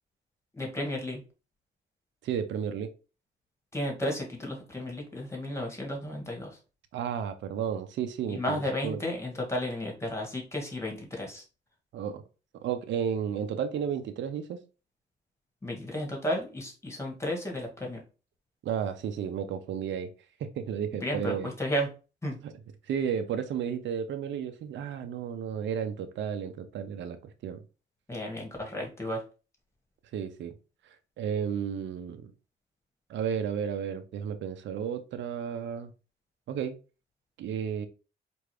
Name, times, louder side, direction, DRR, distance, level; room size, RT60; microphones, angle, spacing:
voice 1, 0.6-1.2 3.7-6.6 8.3-11.4 15.6-18.0 21.0-21.9 22.2-22.4 28.1-29.2, left 1 dB, 15° left, 1.8 m, -33 dB
voice 2, 2.2-2.9 6.9-9.0 11.9-12.2 12.6-14.6 18.6-20.1 20.4-21.5 22.4-22.5 22.9-27.6 30.1-30.5 31.2-32.3 33.1-35.9 36.5-36.8 37.4-37.9, right 8 dB, 65° right, 0.6 m, -33 dB
4.6 x 2.6 x 3.2 m
cardioid pair, 90°, 20 cm